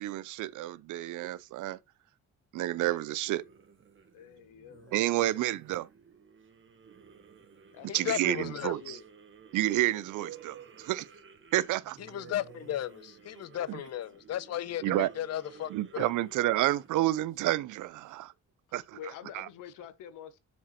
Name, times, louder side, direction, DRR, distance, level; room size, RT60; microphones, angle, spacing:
voice 1, 0.0-1.8 2.5-3.4 4.9-5.9 7.9-9.0 9.5-11.1 11.5-12.0 13.7-13.8 14.8-15.1 15.7-18.3 18.7-19.0 19.3-19.5, right 15 dB, 80° right, 0.6 m, -30 dB
sound 1, 3.2-18.1, right 7 dB, 40° right, 1.4 m, -54 dB
voice 2, 4.1-5.0 7.7-9.1 18.9-20.4, left 8 dB, 90° left, 1.2 m, -47 dB
voice 3, 7.9-8.7 12.1-16.1, left 11 dB, 55° left, 0.7 m, -35 dB
7.3 x 4.4 x 4.2 m
cardioid pair, 90°, 30 cm